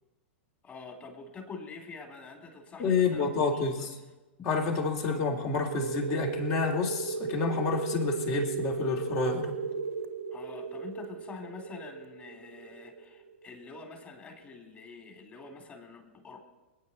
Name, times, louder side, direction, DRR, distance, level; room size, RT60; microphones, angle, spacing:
voice 1, 0.6-3.9 4.4-4.5 5.0-5.3 10.3-16.4, left 4 dB, 25° left, 4 dB, 3.3 m, -46 dB
voice 2, 2.8-3.9 4.4-9.5, left 4 dB, 40° left, 1 dB, 3.2 m, -29 dB
sound 1, 5.7-14.0, right 5 dB, 85° right, 1.5 m, -36 dB
26.5 x 9.4 x 4.4 m, 1.2 s
hypercardioid pair, 105°, 7 cm